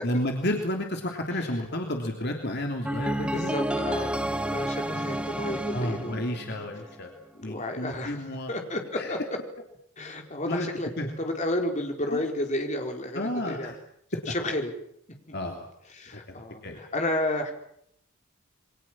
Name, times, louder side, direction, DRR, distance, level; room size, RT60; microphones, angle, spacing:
voice 1, 0.0-3.5 4.8-5.0 5.7-7.1 7.4-8.5 9.0-9.1 10.5-10.7 11.0-11.1 12.1-12.2 13.1-13.8 14.1-14.2 15.3-15.7 16.1-16.2 16.6-16.8, left 1 dB, 50° left, 2 dB, 3.2 m, -31 dB
sound 1, 2.8-6.9, right 1 dB, 5° right, 1.4 m, -30 dB
voice 2, 3.3-6.1 7.3-9.2 10.0-10.9 11.2-13.7 14.3-14.7 15.3-15.4 16.0-17.5, left 1 dB, 35° left, 3 dB, 4.5 m, -31 dB
28.5 x 23.5 x 7.5 m, 0.69 s
head